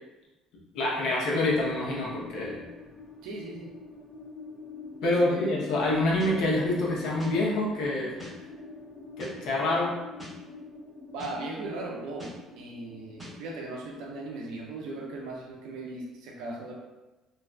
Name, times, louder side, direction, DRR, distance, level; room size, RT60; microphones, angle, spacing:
voice 1, 0.7-2.6 5.0-8.2 9.2-10.0, left 2 dB, 70° left, -4 dB, 0.7 m, -26 dB
sound 1, 1.5-16.2, left 3 dB, 15° left, 0.5 m, -45 dB
voice 2, 3.2-3.7 5.0-5.6 11.1-16.7, right 2 dB, 85° right, 0 dB, 0.5 m, -38 dB
sound 2, 6.2-6.3 7.2-7.3 8.2-8.3 9.2-9.3 10.2-10.3 11.2-11.3 12.2-12.3 13.2-13.3, equal, 5° right, 1.2 m, -43 dB
2.5 x 2.4 x 2.2 m, 1.1 s
cardioid pair, 125°, 0 cm